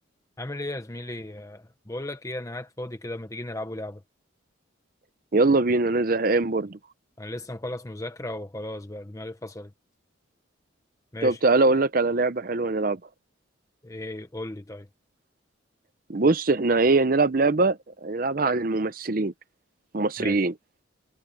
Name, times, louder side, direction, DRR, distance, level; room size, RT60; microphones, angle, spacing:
voice 1, 0.4-4.0 7.2-9.7 11.1-11.4 13.8-14.9 20.2-20.4, left 1 dB, 15° left, 0.9 m, -35 dB
voice 2, 5.3-6.8 11.2-13.0 16.1-19.3 19.9-20.5, right 3 dB, 45° right, 0.7 m, -22 dB
head